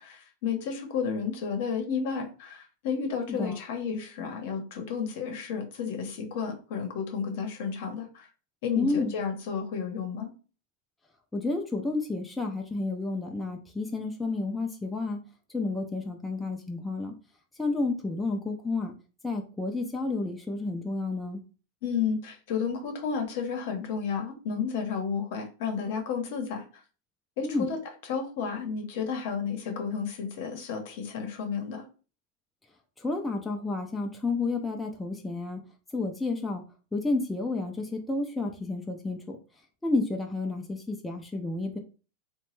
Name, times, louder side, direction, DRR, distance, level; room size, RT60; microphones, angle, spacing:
voice 1, 0.0-8.3 8.6-10.3 21.8-26.7 27.4-27.8 28.1-31.8, left 6 dB, 65° left, 4 dB, 0.8 m, -32 dB
voice 2, 8.8-9.1 11.3-15.2 15.5-17.2 17.6-18.9 19.2-21.4 27.4-27.7 33.0-35.6 35.9-36.6 36.9-39.4 39.8-41.8, left 3 dB, 10° left, 1 dB, 0.4 m, -30 dB
2.9 x 2.2 x 3.0 m, 0.35 s
supercardioid pair, 130°, 0 cm